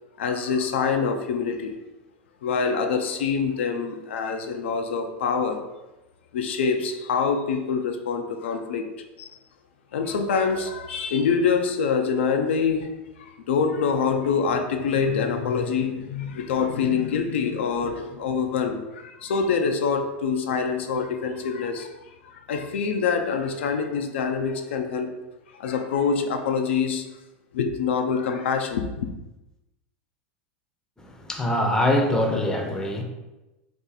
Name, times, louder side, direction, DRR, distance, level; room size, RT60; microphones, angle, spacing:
voice 1, 0.2-1.8 2.4-5.6 6.3-8.9 9.2-9.3 9.9-25.1 25.5-27.1 27.5-29.1, left 5 dB, 85° left, 5 dB, 0.4 m, -25 dB
voice 2, 31.0-33.0, left 1 dB, 10° left, 2 dB, 0.6 m, -23 dB
2.7 x 2.5 x 3.9 m, 1.0 s
hypercardioid pair, 105°, 6 cm